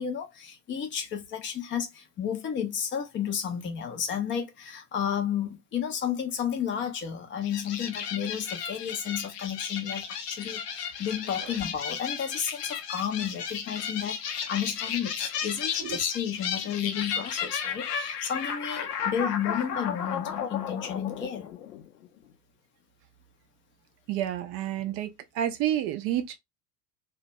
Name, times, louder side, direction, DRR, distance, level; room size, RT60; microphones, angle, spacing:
voice 1, 0.0-21.5, left 8 dB, 25° left, 0.5 m, -32 dB
sound 1, 7.4-22.1, left 7 dB, 75° left, 0.7 m, -34 dB
voice 2, 24.1-26.4, right 11 dB, 35° right, 0.4 m, -29 dB
2.2 x 2.1 x 2.6 m
hypercardioid pair, 85°, 49 cm